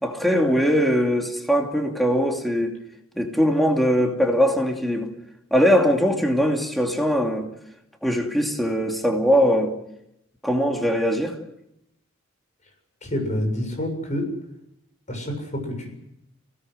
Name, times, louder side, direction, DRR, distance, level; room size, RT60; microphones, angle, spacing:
voice 1, 0.0-2.7 3.2-5.1 5.5-7.5 8.0-9.7 10.4-11.4, equal, ahead, 2 dB, 2.6 m, -21 dB
voice 2, 13.0-14.3 15.1-16.0, left 1 dB, 35° left, 3 dB, 7.5 m, -28 dB
26.0 x 18.0 x 7.9 m, 0.80 s
head